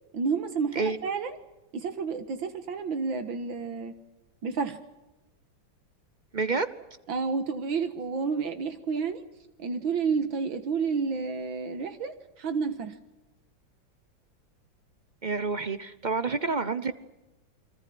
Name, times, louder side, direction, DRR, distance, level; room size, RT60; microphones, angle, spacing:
voice 1, 0.1-1.4 1.7-3.9 4.4-4.8 7.1-9.2 9.6-13.0, right 5 dB, 75° right, 8 dB, 2.2 m, -30 dB
voice 2, 6.3-6.7 15.2-16.9, right 3 dB, 40° right, 12 dB, 0.6 m, -28 dB
29.5 x 22.5 x 6.2 m, 1.0 s
omnidirectional pair, 2.2 m